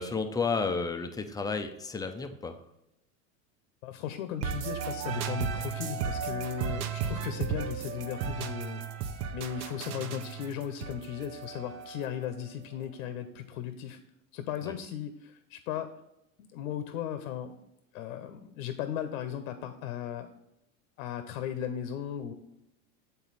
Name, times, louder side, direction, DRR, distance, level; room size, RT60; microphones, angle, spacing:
voice 1, 0.0-2.6 14.6-14.7, left 4 dB, 10° left, 7 dB, 0.4 m, -32 dB
voice 2, 3.8-8.9 9.3-14.0 14.3-15.9 16.4-17.6 17.9-20.3 21.0-22.3, left 9 dB, 75° left, 9 dB, 0.7 m, -36 dB
sound 1, 4.4-12.2, right 7 dB, 40° right, 0.6 m, -35 dB
7.5 x 4.0 x 4.0 m, 0.87 s
hypercardioid pair, 100°, 41 cm